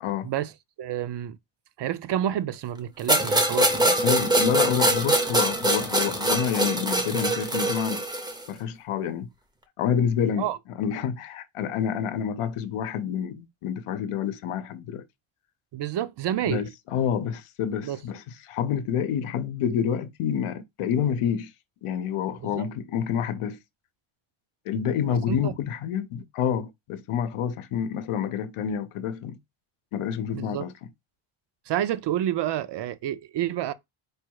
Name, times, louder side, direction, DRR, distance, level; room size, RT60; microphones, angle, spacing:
voice 1, 0.8-1.4 1.8-4.0 10.4-10.6 15.7-16.6 17.8-18.0 22.4-22.6 25.3-25.5 30.3-30.7 31.7-33.7, right 11 dB, 55° right, 0.5 m, -29 dB
sound 1, 3.1-8.4, right 1 dB, 10° right, 0.5 m, -23 dB
voice 2, 4.0-8.0 8.5-9.3 9.8-15.0 16.4-21.5 21.8-23.6 24.7-29.4 29.9-30.9, left 8 dB, 85° left, 0.8 m, -28 dB
4.7 x 2.3 x 4.6 m
cardioid pair, 165°, 50 cm